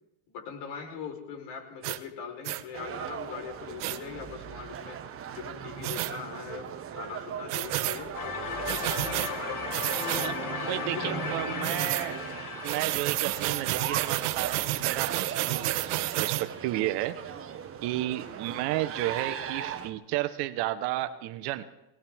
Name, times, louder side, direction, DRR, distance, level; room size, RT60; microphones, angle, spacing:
voice 1, 0.3-5.0 5.3-8.2 8.5-9.3 9.9-10.4 10.7-12.2 18.2-18.4, left 6 dB, 60° left, 2 dB, 4.4 m, -41 dB
sound 1, 1.8-2.0 2.4-2.6 3.8-4.0 5.8-6.1 7.5-8.0 8.7-9.3 9.7-10.3 11.6-12.1 12.6-16.4, right 16 dB, 80° right, 1.0 m, -30 dB
sound 2, 2.7-19.9, right 9 dB, 30° right, 1.3 m, -39 dB
sound 3, 8.1-15.0, left 5 dB, 45° left, 1.9 m, -37 dB
voice 2, 10.7-12.1 12.6-17.2 17.8-21.6, right 15 dB, 60° right, 10 dB, 1.2 m, -32 dB
20.5 x 18.5 x 3.6 m, 0.96 s
supercardioid pair, 130°, 45 cm